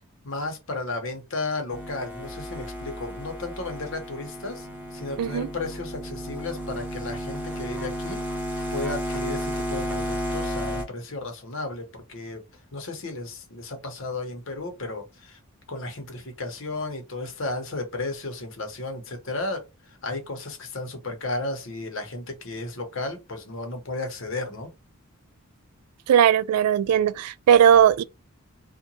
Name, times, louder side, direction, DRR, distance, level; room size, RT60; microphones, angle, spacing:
voice 1, 0.2-4.7 4.9-8.2 8.7-12.4 12.7-15.4 15.7-19.6 20.0-24.7, left 2 dB, 60° left, 0.8 m, -33 dB
sound 1, 1.7-10.8, equal, 5° right, 0.6 m, -32 dB
voice 2, 5.2-5.5 26.1-28.0, right 9 dB, 90° right, 0.3 m, -18 dB
2.8 x 2.2 x 2.7 m
head